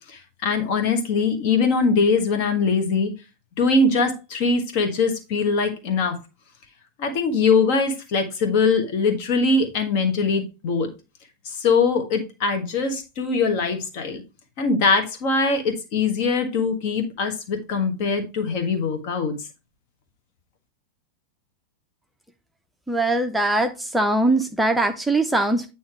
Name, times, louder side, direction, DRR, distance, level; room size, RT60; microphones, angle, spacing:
voice 1, 0.1-3.1 3.6-6.2 7.0-10.9 11.4-14.2 14.6-19.3, left 4 dB, 45° left, 5 dB, 1.5 m, -22 dB
voice 2, 22.9-25.7, right 2 dB, 5° right, 5 dB, 0.6 m, -21 dB
9.1 x 3.1 x 4.8 m, 0.28 s
figure-of-eight pair, 90°, 0 cm